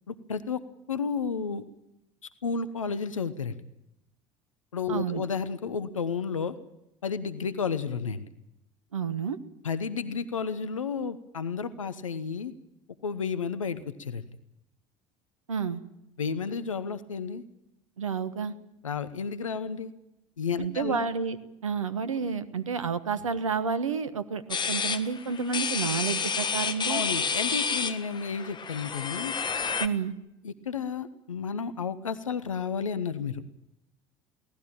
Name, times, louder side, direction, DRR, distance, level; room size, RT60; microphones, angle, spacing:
voice 1, 0.1-0.6 0.9-1.6 2.4-3.6 4.7-6.6 7.0-8.3 9.6-12.5 13.0-14.2 16.2-17.4 18.8-19.9 20.4-21.0 26.9-29.3 30.4-33.4, left 5 dB, 80° left, 14 dB, 1.0 m, -32 dB
voice 2, 4.9-5.2 8.9-9.4 15.5-15.8 18.0-18.5 20.6-21.4 21.6-27.0 29.8-30.1, right 6 dB, 80° right, 11 dB, 1.3 m, -30 dB
sound 1, 24.5-29.9, left 5 dB, 25° left, 1.5 m, -30 dB
23.5 x 17.5 x 8.9 m, 0.87 s
figure-of-eight pair, 60°, 16 cm